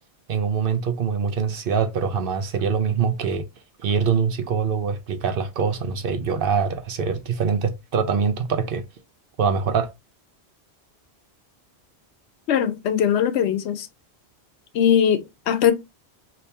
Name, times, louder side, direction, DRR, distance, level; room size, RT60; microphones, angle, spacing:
voice 1, 0.3-3.5 3.8-8.8 9.4-9.9, right 6 dB, 60° right, 0.7 m, -24 dB
voice 2, 12.5-13.9 14.7-15.7, left 9 dB, 80° left, 0.9 m, -20 dB
3.3 x 2.9 x 2.8 m
omnidirectional pair, 1.1 m